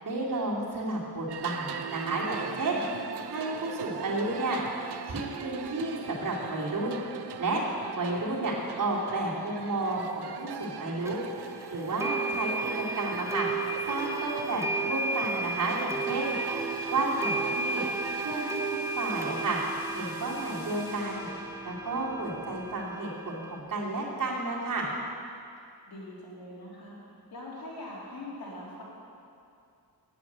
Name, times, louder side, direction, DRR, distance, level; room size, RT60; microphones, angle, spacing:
voice 1, 0.0-2.8 3.3-4.6 5.0-7.0 7.4-7.6 7.9-11.2 11.7-13.5 13.9-16.4 16.9-17.8 18.2-19.6 19.9-21.3 21.6-24.9, right 2 dB, 55° right, -4 dB, 2.8 m, -31 dB
sound 1, 1.3-18.4, right 8 dB, 85° right, 0.7 m, -41 dB
voice 2, 2.5-3.3 12.0-12.4 25.9-27.0 27.3-28.8, left 1 dB, 65° left, -5 dB, 3.3 m, -43 dB
sound 2, 11.1-11.2 12.0-23.6, right 3 dB, 5° right, 0.8 m, -33 dB
sound 3, 15.9-22.8, equal, 45° left, 2.7 m, -48 dB
9.6 x 8.3 x 8.1 m, 2.5 s
cardioid pair, 95°, 39 cm